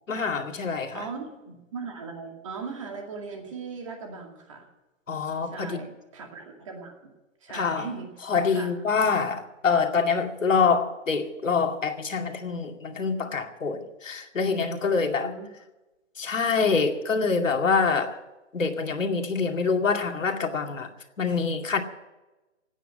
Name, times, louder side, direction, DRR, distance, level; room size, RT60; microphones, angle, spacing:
voice 1, 0.1-1.1 5.1-5.8 7.5-7.9 8.3-15.3 16.2-18.2 18.5-20.9 21.2-21.8, left 5 dB, 75° left, 2.4 m, -25 dB
voice 2, 0.9-4.7 5.4-6.9 7.4-8.7 15.2-15.5, right 4 dB, 25° right, 2.3 m, -39 dB
17.0 x 9.2 x 8.5 m
hypercardioid pair, 170°, 39 cm